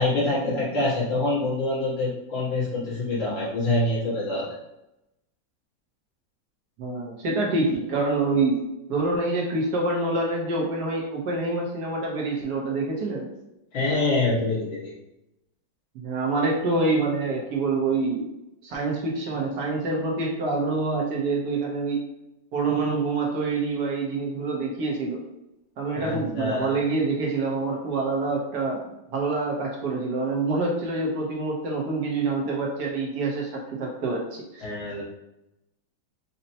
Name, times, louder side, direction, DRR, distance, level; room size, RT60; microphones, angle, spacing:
voice 1, 0.0-4.6 13.7-14.9 25.9-26.7 34.6-35.0, left 2 dB, 80° left, -9 dB, 2.3 m, -25 dB
voice 2, 6.8-8.6 8.9-13.3 15.9-18.3 18.6-22.0 22.5-25.2 25.8-28.8 29.1-34.6, right 3 dB, 65° right, -2 dB, 1.3 m, -26 dB
5.2 x 2.1 x 2.8 m, 0.89 s
omnidirectional pair, 2.1 m